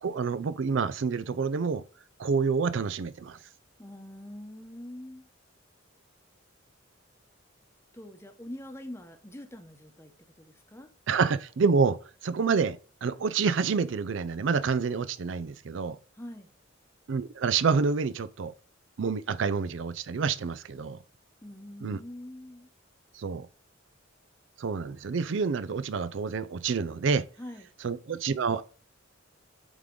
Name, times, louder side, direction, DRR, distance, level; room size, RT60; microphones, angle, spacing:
voice 1, 0.0-1.8 2.2-3.4 11.1-12.0 12.2-16.0 17.1-18.5 19.0-21.0 21.8-22.0 23.1-23.5 24.6-27.3 27.8-28.6, right 5 dB, 65° right, 0.4 m, -28 dB
voice 2, 3.8-5.3 7.9-10.9 16.2-16.5 21.4-22.7 27.4-27.7, left 1 dB, 15° left, 0.9 m, -44 dB
8.0 x 3.7 x 3.7 m
head